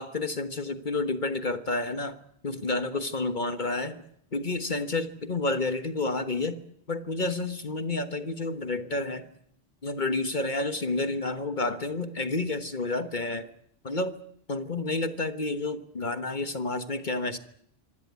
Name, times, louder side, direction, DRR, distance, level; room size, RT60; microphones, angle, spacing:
voice 1, 0.0-2.2 2.4-4.0 4.3-6.6 6.9-9.3 9.8-13.5 13.8-14.1 14.5-17.4, left 2 dB, 45° left, 9 dB, 1.4 m, -30 dB
25.5 x 16.5 x 9.5 m, 0.71 s
omnidirectional pair, 1.1 m